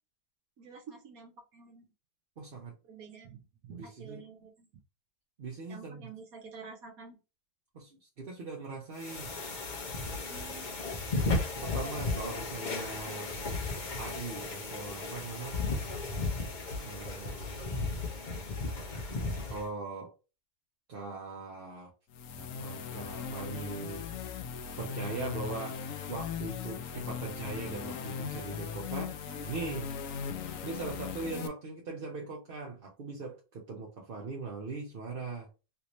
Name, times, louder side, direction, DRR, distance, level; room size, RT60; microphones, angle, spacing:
voice 1, 0.6-1.9 2.9-4.7 5.7-7.2 10.3-10.7 29.3-29.5, right 5 dB, 70° right, 2 dB, 1.3 m, -49 dB
voice 2, 2.4-2.7 3.7-4.2 5.4-6.1 7.7-9.3 11.6-13.3 14.0-15.6 16.8-18.0 19.5-20.1 20.9-21.9 22.4-24.4 24.8-25.8 26.1-29.2 29.4-29.9 30.6-35.5, right 4 dB, 45° right, -2 dB, 0.9 m, -40 dB
sound 1, 9.0-19.7, left 3 dB, 40° left, 0.8 m, -35 dB
sound 2, 22.1-31.5, left 7 dB, 70° left, 0.9 m, -38 dB
3.3 x 2.7 x 3.0 m, 0.30 s
omnidirectional pair, 1.6 m